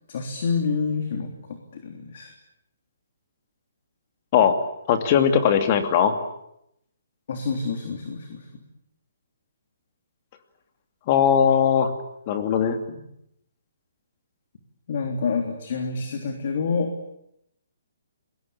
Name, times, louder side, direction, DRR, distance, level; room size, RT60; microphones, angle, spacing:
voice 1, 0.1-2.3 7.3-8.6 12.9-13.0 14.9-16.9, left 5 dB, 45° left, 5 dB, 3.5 m, -28 dB
voice 2, 4.9-6.1 11.1-11.9 12.3-12.8, left 8 dB, 30° left, 8 dB, 2.6 m, -19 dB
28.5 x 21.5 x 8.7 m, 0.78 s
hypercardioid pair, 170°, 0 cm